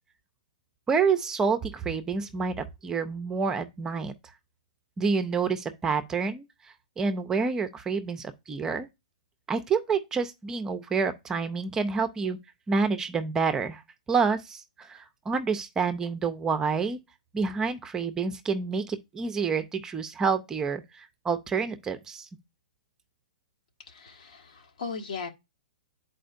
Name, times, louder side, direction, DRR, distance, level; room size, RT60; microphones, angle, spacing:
voice 1, 0.9-4.1 5.0-6.4 7.0-8.9 9.5-12.4 12.7-13.8 14.1-17.0 17.3-22.3, right 5 dB, 15° right, 0.5 m, -28 dB
voice 2, 23.9-25.3, left 5 dB, 70° left, 1.4 m, -37 dB
10.0 x 4.3 x 2.6 m
hypercardioid pair, 135°, 4 cm